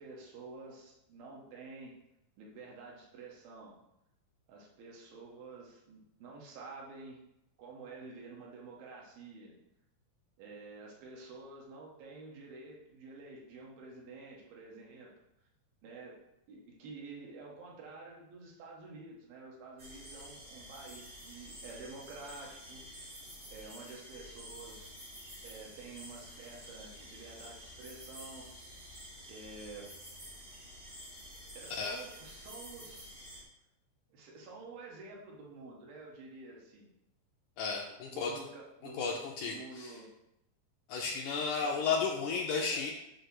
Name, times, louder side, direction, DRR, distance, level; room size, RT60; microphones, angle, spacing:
voice 1, 0.0-2.0 2.4-3.7 4.5-7.2 7.6-9.5 10.4-15.1 15.8-16.2 16.5-22.8 23.5-24.9 25.4-28.5 29.3-29.9 31.5-33.2 34.1-36.9 38.1-40.1 41.6-42.0 42.3-42.9, right 3 dB, 90° right, -2 dB, 3.2 m, -49 dB
sound 1, 19.8-33.4, equal, 35° right, 0.8 m, -50 dB
voice 2, 37.6-38.3 39.0-39.9 40.9-42.9, left 5 dB, 80° left, 0 dB, 1.8 m, -33 dB
7.7 x 2.8 x 6.1 m, 0.87 s
omnidirectional pair, 4.1 m